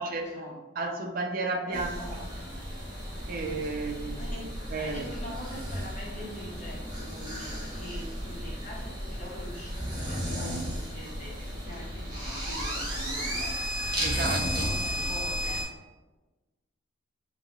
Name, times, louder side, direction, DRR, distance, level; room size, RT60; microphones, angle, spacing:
voice 1, 0.0-0.6 1.7-2.5 4.2-13.6 14.4-15.7, equal, 35° left, -5 dB, 0.7 m, -43 dB
voice 2, 0.8-1.9 2.2-2.3 3.3-4.2 4.7-5.1 14.0-14.7, right 3 dB, 45° right, 3 dB, 0.4 m, -32 dB
sound 1, 1.7-15.6, equal, 20° right, 1.0 m, -34 dB
5.3 x 2.1 x 2.3 m, 1.1 s
head